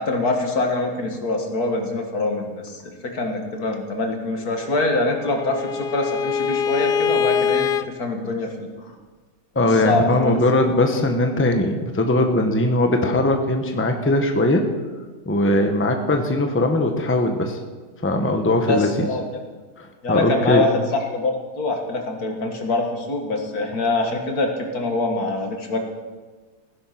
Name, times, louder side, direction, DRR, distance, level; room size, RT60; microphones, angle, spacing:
voice 1, 0.0-8.9 9.6-10.4 18.7-19.2 20.0-25.8, left 2 dB, 70° left, 3 dB, 2.4 m, -24 dB
Bowed string instrument, 4.7-7.9, left 7 dB, 85° left, 0.4 m, -24 dB
voice 2, 9.5-14.6 15.3-17.6 18.0-19.1 19.8-20.7, left 1 dB, 10° left, 5 dB, 1.1 m, -20 dB
16.0 x 10.5 x 6.0 m, 1.3 s
omnidirectional pair, 1.7 m